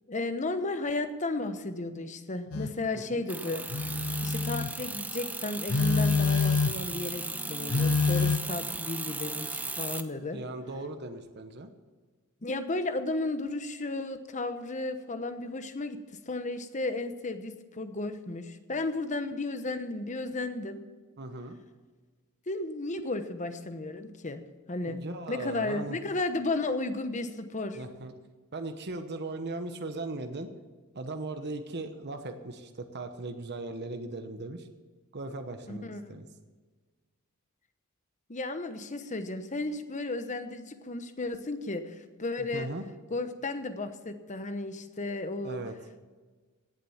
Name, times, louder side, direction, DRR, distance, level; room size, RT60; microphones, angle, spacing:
voice 1, 0.1-3.6 4.2-10.4 12.4-16.0 16.3-20.8 22.5-25.0 25.3-27.8 35.7-36.2 38.3-42.7 43.1-45.6, left 2 dB, 35° left, 9 dB, 1.0 m, -34 dB
Telephone, 2.5-2.8 3.7-4.8 5.7-6.9 7.7-8.4, left 4 dB, 85° left, 0.8 m, -26 dB
sound 1, 3.3-10.0, right 3 dB, 5° right, 0.6 m, -36 dB
voice 2, 10.3-11.7 21.2-21.6 24.9-26.0 27.7-28.1 28.5-30.5 30.9-34.7 35.1-36.3 42.5-42.8 45.4-45.7, right 2 dB, 50° right, 7 dB, 1.0 m, -38 dB
17.0 x 7.5 x 7.2 m, 1.4 s
head